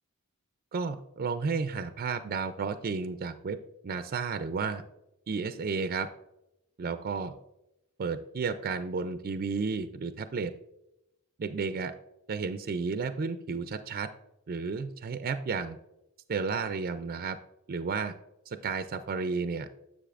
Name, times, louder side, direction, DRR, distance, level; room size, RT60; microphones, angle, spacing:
voice 1, 0.7-3.6 3.8-4.8 5.3-6.1 6.8-7.3 8.0-10.5 11.4-11.9 12.3-14.1 14.5-15.8 16.3-17.4 17.7-18.1 18.5-19.7, right 5 dB, 45° right, 10 dB, 0.4 m, -32 dB
10.0 x 7.3 x 2.5 m, 0.87 s
head